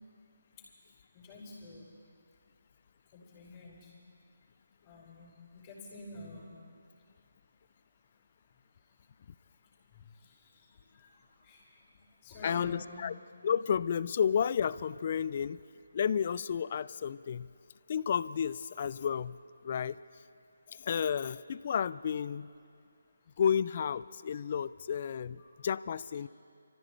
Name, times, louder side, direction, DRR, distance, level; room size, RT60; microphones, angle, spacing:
voice 1, 1.1-1.9 3.1-3.9 4.8-6.6 10.1-11.8 12.2-13.1 25.4-25.5, left 2 dB, 25° left, -5 dB, 4.4 m, -49 dB
voice 2, 12.4-13.1 13.4-15.6 15.9-17.5 17.9-19.4 19.6-19.9 20.7-22.5 23.4-26.3, left 7 dB, 40° left, 17 dB, 0.3 m, -31 dB
27.5 x 14.0 x 3.3 m, 2.4 s
figure-of-eight pair, 160°, 0 cm